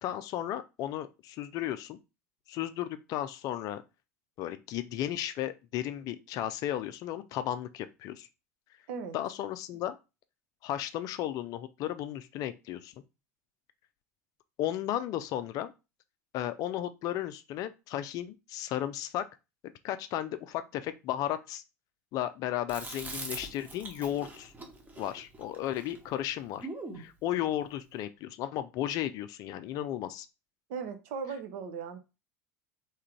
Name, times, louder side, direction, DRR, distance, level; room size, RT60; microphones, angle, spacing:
voice 1, 0.0-2.0 2.5-3.8 4.4-8.3 9.1-10.0 10.6-12.9 14.6-15.7 16.3-19.2 19.8-21.6 22.1-24.5 25.0-26.7 26.9-30.3, left 12 dB, 40° left, 0.5 m, -34 dB
Chewing mastication, 22.7-27.1, right 2 dB, 20° right, 1.2 m, -43 dB
voice 2, 30.7-32.0, right 6 dB, 55° right, 1.0 m, -37 dB
3.7 x 3.1 x 4.4 m
figure-of-eight pair, 75°, 9 cm